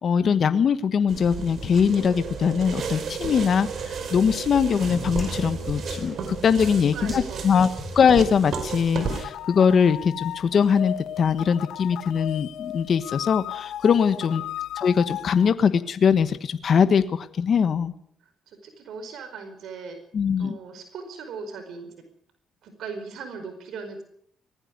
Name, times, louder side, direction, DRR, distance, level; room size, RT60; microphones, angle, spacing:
voice 1, 0.0-7.7 7.9-14.4 14.8-17.9 20.1-20.6, left 6 dB, 55° left, 11 dB, 1.2 m, -22 dB
sound 1, 1.1-9.2, right 5 dB, 60° right, 4.7 m, -33 dB
sound 2, 4.7-9.2, left 1 dB, 5° right, 7.7 m, -41 dB
voice 2, 6.9-7.6 14.1-14.4 18.2-20.0 20.4-21.9 22.6-24.0, right 5 dB, 75° right, 8 dB, 4.9 m, -39 dB
sound 3, 9.0-15.5, left 12 dB, 80° left, 0.8 m, -35 dB
19.5 x 15.0 x 9.6 m, 0.67 s
cardioid pair, 90°, 0 cm